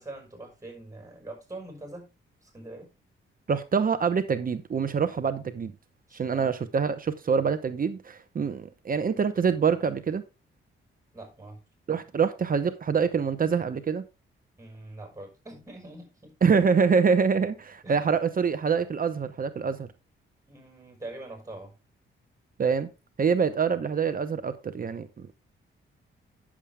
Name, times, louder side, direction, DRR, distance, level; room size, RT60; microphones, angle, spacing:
voice 1, 0.0-2.1 2.4-2.9 6.1-6.5 11.1-11.6 14.6-16.3 17.8-18.0 20.5-21.7, right 2 dB, 15° right, 5.4 m, -43 dB
voice 2, 3.5-5.7 6.1-10.2 11.9-14.0 16.4-19.9 22.6-22.9 23.2-25.3, right 6 dB, 40° right, 0.9 m, -25 dB
9.7 x 7.4 x 3.4 m
cardioid pair, 90°, 21 cm